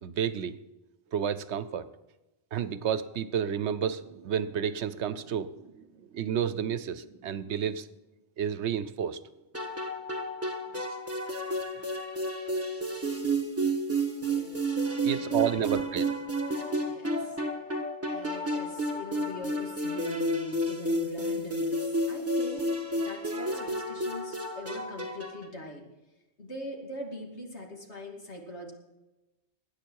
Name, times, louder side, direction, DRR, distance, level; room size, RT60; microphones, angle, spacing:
voice 1, 0.0-0.6 1.1-1.9 2.5-7.9 8.4-9.2 15.0-16.1, right 8 dB, 75° right, 14 dB, 1.0 m, -31 dB
sound 1, 9.5-25.5, right 1 dB, 15° right, 1.4 m, -31 dB
voice 2, 14.2-16.3 16.8-17.4 18.1-25.9 26.4-28.7, equal, 70° left, 0 dB, 2.8 m, -42 dB
20.5 x 9.5 x 4.7 m, 1.0 s
omnidirectional pair, 1.2 m